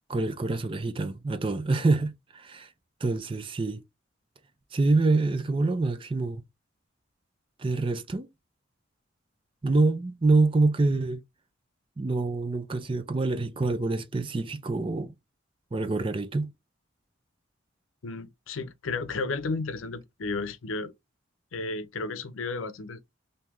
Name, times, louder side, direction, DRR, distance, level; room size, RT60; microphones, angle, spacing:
voice 1, 0.1-2.7 3.0-3.8 4.7-6.4 7.6-8.3 9.6-11.2 12.0-15.1 15.7-16.5, right 3 dB, 25° right, 0.4 m, -26 dB
voice 2, 18.0-20.9 21.5-23.1, left 3 dB, 85° left, 0.6 m, -33 dB
3.5 x 2.7 x 3.0 m
head